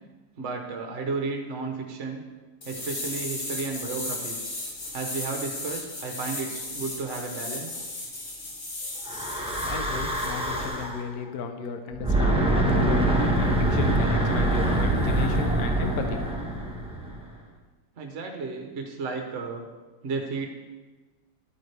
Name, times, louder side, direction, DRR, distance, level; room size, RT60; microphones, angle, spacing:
voice 1, 0.4-2.2 2.6-4.5 4.9-7.9 18.0-19.6 20.0-20.5, right 4 dB, 50° right, 3 dB, 1.0 m, -33 dB
sound 1, 2.6-9.7 10.1-10.3, left 2 dB, 40° left, 1.9 m, -35 dB
Breathing / Wind, 9.1-11.0 11.9-17.3, right 1 dB, 5° right, 0.8 m, -24 dB
voice 2, 9.6-13.1 13.4-16.2, left 5 dB, 60° left, 6 dB, 1.2 m, -34 dB
11.5 x 8.8 x 3.4 m, 1.3 s
omnidirectional pair, 2.1 m